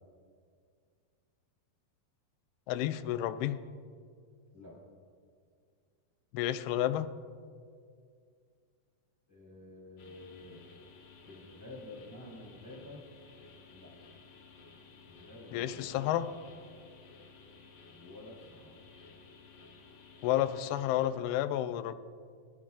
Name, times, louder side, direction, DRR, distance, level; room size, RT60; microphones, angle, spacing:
voice 1, 2.7-3.6 6.3-7.1 15.5-16.3 20.2-22.0, left 12 dB, 85° left, 11 dB, 2.5 m, -31 dB
voice 2, 9.3-10.7 11.2-13.0 13.7-13.9 15.1-16.0 17.9-18.7, left 2 dB, 5° right, -4 dB, 3.2 m, -50 dB
sound 1, 10.0-21.1, left 4 dB, 55° left, 1.9 m, -56 dB
20.5 x 13.0 x 2.5 m, 2.2 s
omnidirectional pair, 4.5 m